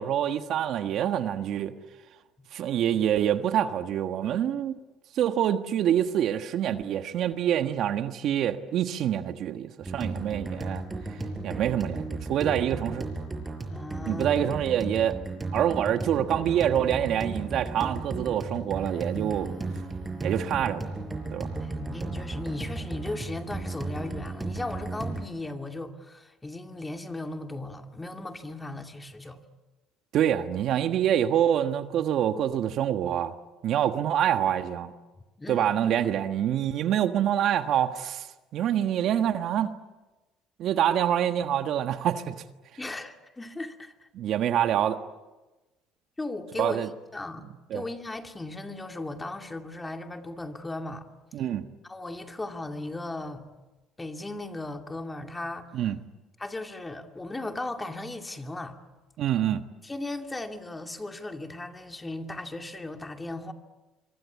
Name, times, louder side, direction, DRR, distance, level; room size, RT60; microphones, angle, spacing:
voice 1, 0.0-1.7 2.5-4.7 5.1-10.8 11.4-13.1 14.1-15.2 15.5-19.5 20.2-21.0 21.3-21.5 30.1-33.3 33.6-34.9 35.5-38.3 38.5-39.7 40.6-42.4 44.1-45.0 46.6-46.9 47.7-47.8 51.3-51.7 55.7-56.0 59.2-59.6, right 10 dB, 60° right, 1.4 m, -26 dB
sound 1, 9.8-25.2, right 3 dB, 15° right, 5.3 m, -35 dB
voice 2, 13.7-14.3 21.6-29.4 35.4-35.7 42.8-44.1 46.2-47.5 47.7-51.1 51.8-53.5 54.0-55.9 56.4-58.8 59.8-63.5, left 2 dB, 15° left, 2.6 m, -37 dB
26.0 x 24.0 x 8.4 m
supercardioid pair, 95°, 0 cm